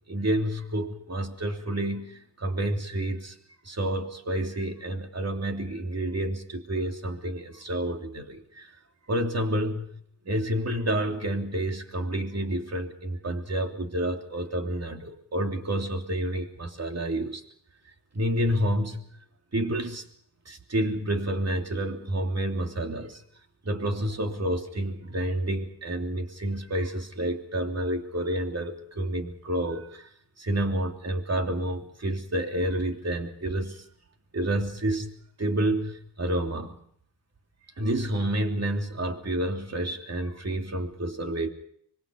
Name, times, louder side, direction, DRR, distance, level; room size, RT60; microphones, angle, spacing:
voice 1, 0.1-3.3 3.6-8.7 9.1-9.9 10.2-17.4 18.1-19.0 19.5-20.0 20.4-23.2 23.6-30.1 30.4-33.8 34.3-35.1 35.4-36.8 37.8-41.5, right 1 dB, 35° right, 4 dB, 3.2 m, -29 dB
25.5 x 23.5 x 5.4 m, 0.66 s
wide cardioid pair, 95°, 42 cm